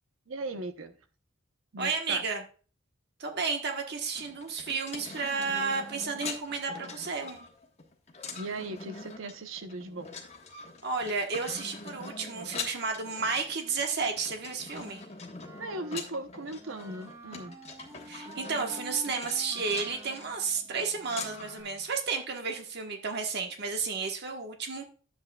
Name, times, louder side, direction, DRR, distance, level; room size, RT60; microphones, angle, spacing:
voice 1, 0.3-1.0 1.7-2.2 8.3-10.1 15.6-17.6, right 2 dB, 75° right, 0.9 m, -38 dB
voice 2, 1.8-2.4 3.2-7.5 10.8-15.0 18.1-24.8, right 4 dB, 55° right, 1.3 m, -32 dB
sound 1, 4.1-21.6, left 4 dB, 30° left, 1.3 m, -43 dB
Wind instrument woodwind instrument, 15.4-21.9, right 2 dB, 15° right, 1.0 m, -49 dB
10.5 x 7.6 x 2.3 m
head